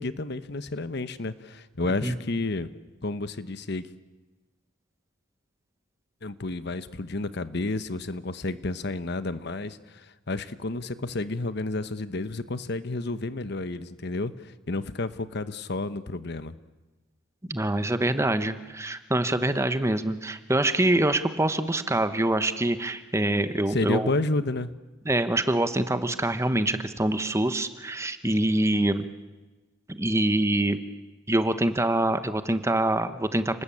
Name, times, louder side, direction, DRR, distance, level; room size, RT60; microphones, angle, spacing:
voice 1, 0.0-2.7 3.0-3.8 6.2-16.5 23.7-24.7, left 2 dB, 60° left, 13 dB, 1.1 m, -31 dB
voice 2, 17.5-24.1 25.0-29.0 29.9-30.8 31.3-33.6, right 1 dB, 15° right, 10 dB, 1.1 m, -25 dB
30.0 x 20.0 x 8.7 m, 1.2 s
head